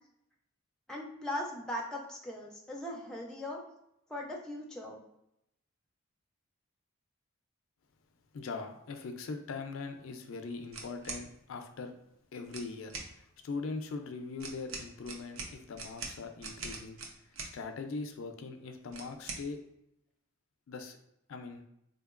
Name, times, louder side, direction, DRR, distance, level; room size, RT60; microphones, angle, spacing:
voice 1, 0.9-3.6 4.1-5.0, left 1 dB, 5° left, -1 dB, 0.3 m, -39 dB
voice 2, 8.3-11.9 12.3-19.6 20.7-21.0 21.3-21.6, left 4 dB, 70° left, 6 dB, 0.4 m, -41 dB
sound 1, 10.7-11.2 12.4-13.1 14.4-17.5 18.9-19.4, right 4 dB, 70° right, 0.6 m, -42 dB
3.8 x 2.8 x 2.4 m, 0.80 s
head